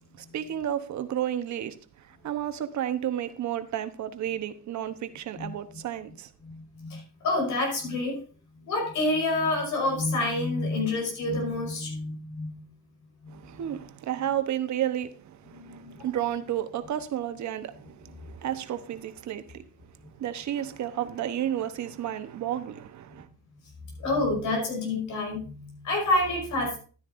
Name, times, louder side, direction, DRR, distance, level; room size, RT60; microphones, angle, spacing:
voice 1, 0.2-6.3 13.3-23.3, right 11 dB, 70° right, 1.0 m, -32 dB
voice 2, 6.4-8.2 8.6-12.7 13.2-13.8 15.5-16.1 23.1-23.2 24.0-26.8, left 2 dB, 75° left, 5.2 m, -28 dB
12.5 x 9.8 x 2.6 m
cardioid pair, 90°, 30 cm